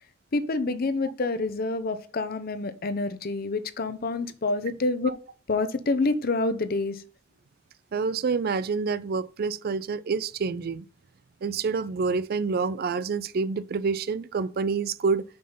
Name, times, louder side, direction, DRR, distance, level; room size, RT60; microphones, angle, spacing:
voice 1, 0.3-5.1 5.5-7.0, left 3 dB, 55° left, 0.7 m, -27 dB
voice 2, 7.9-10.9 11.4-15.2, right 5 dB, 55° right, 0.4 m, -27 dB
5.4 x 5.3 x 5.5 m
head